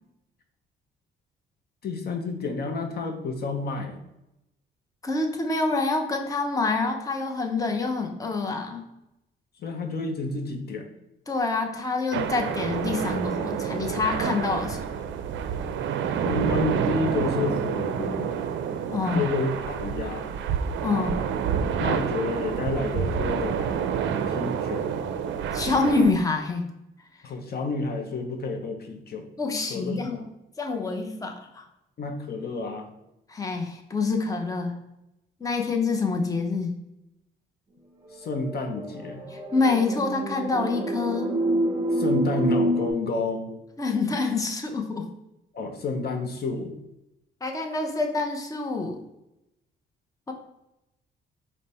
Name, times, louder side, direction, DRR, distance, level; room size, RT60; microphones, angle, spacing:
voice 1, 1.8-4.0 9.6-10.9 16.2-18.4 19.1-20.3 21.8-23.7 24.3-24.9 27.2-29.3 29.7-30.2 32.0-32.9 38.1-39.3 41.9-43.5 45.5-46.8, left 3 dB, 50° left, 5 dB, 0.7 m, -30 dB
voice 2, 5.0-8.8 11.3-14.8 18.9-19.3 20.8-21.2 25.5-26.7 29.4-30.2 30.6-31.7 33.3-34.8 35.4-36.7 39.3-41.3 43.8-45.1 47.4-49.0 50.3-50.4, left 3 dB, 15° left, 3 dB, 0.7 m, -26 dB
sound 1, 12.1-26.1, right 7 dB, 70° right, 0.4 m, -28 dB
sound 2, 38.1-42.9, right 1 dB, 15° right, 1.2 m, -27 dB
5.1 x 2.1 x 4.2 m, 0.88 s
cardioid pair, 90°, 20 cm